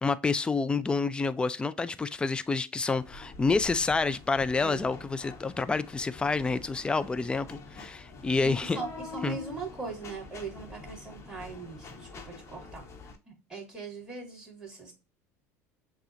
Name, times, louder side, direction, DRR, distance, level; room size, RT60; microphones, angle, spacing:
voice 1, 0.0-8.8 9.2-9.4, left 4 dB, 15° left, 0.4 m, -28 dB
sound 1, 3.0-13.2, left 3 dB, 40° left, 1.1 m, -46 dB
voice 2, 4.6-5.1 8.3-12.8 13.3-14.9, right 4 dB, 10° right, 2.5 m, -40 dB
6.8 x 2.4 x 2.7 m
supercardioid pair, 105°, 7 cm